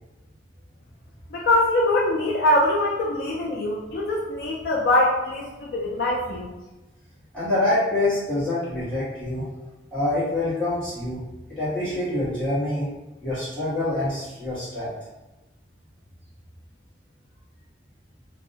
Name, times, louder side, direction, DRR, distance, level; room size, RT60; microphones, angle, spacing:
voice 1, 1.3-6.5, left 1 dB, 55° left, -2 dB, 0.3 m, -23 dB
voice 2, 7.3-9.5 9.9-11.2 11.5-12.9 13.2-14.9, left 1 dB, 5° left, -13 dB, 1.2 m, -26 dB
2.6 x 2.1 x 2.7 m, 1.0 s
head